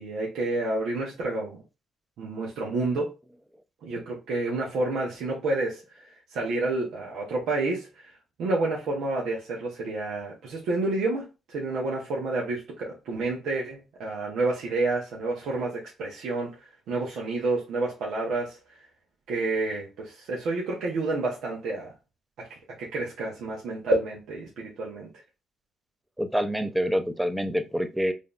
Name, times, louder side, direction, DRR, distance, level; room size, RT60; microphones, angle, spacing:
voice 1, 0.0-1.6 2.2-3.1 3.8-8.1 8.4-18.8 19.3-21.9 22.4-25.1, right 2 dB, 80° right, 1.0 m, -29 dB
voice 2, 26.2-28.1, equal, 5° right, 0.6 m, -26 dB
5.0 x 2.8 x 2.5 m
cardioid pair, 90°, 0 cm